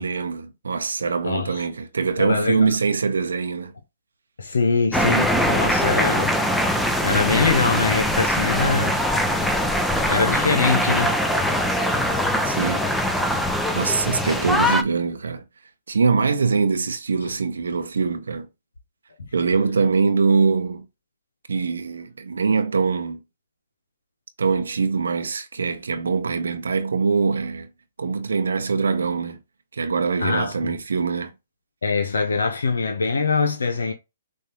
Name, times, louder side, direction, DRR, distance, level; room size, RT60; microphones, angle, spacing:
voice 1, 0.0-3.7 12.4-12.8 13.7-15.4 15.9-18.5 19.3-20.8 21.5-23.2 24.4-27.7 28.0-29.4 29.7-31.3, right 5 dB, 80° right, 0.8 m, -23 dB
voice 2, 1.2-1.6 2.2-2.8 4.4-6.4 7.0-9.0 10.1-11.1 30.2-30.7 31.8-33.9, left 4 dB, 85° left, 0.9 m, -23 dB
sound 1, 4.9-14.8, equal, ahead, 0.6 m, -22 dB
6.4 x 2.6 x 3.0 m
hypercardioid pair, 135°, 0 cm